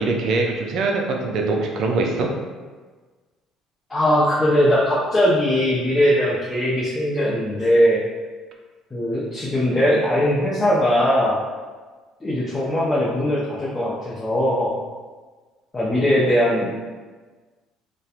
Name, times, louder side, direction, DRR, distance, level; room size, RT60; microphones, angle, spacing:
voice 1, 0.0-2.3, right 3 dB, 60° right, 1 dB, 0.4 m, -22 dB
voice 2, 3.9-8.0 8.9-11.4 12.2-14.8 15.7-16.8, equal, 20° left, -7 dB, 0.5 m, -20 dB
2.8 x 2.1 x 2.4 m, 1.4 s
cardioid pair, 100°, 0 cm